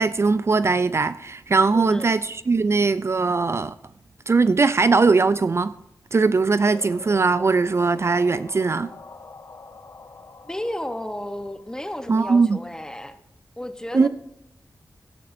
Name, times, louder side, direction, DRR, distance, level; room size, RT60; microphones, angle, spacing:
voice 1, 0.0-3.7 4.3-5.7 6.1-8.9 12.1-12.6 13.9-14.1, right 4 dB, 40° right, 0.3 m, -20 dB
voice 2, 1.7-2.1 10.4-13.2 13.6-14.1, left 1 dB, 10° left, 0.9 m, -32 dB
sound 1, 6.7-12.5, left 4 dB, 55° left, 1.1 m, -45 dB
15.5 x 11.5 x 2.6 m
wide cardioid pair, 100°, 7 cm